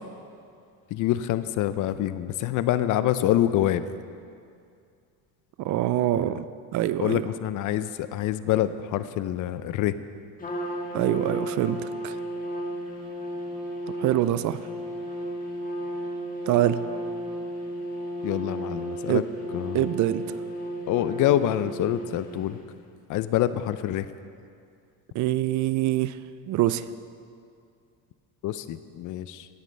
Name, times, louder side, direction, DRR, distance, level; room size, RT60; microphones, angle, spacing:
voice 1, 0.9-3.8 7.0-10.0 18.2-19.2 19.5-19.8 20.9-22.6 23.1-24.1 28.4-29.5, left 12 dB, 55° left, 13 dB, 0.5 m, -26 dB
voice 2, 5.6-6.5 6.7-7.3 10.9-12.2 14.0-14.6 16.5-16.8 19.1-19.3 19.7-20.4 25.1-26.2 26.5-26.9, right 13 dB, 55° right, 15 dB, 0.4 m, -25 dB
Trumpet, 10.4-22.5, equal, 25° left, 1.6 m, -34 dB
16.5 x 9.2 x 3.3 m, 2.3 s
cardioid pair, 115°, 37 cm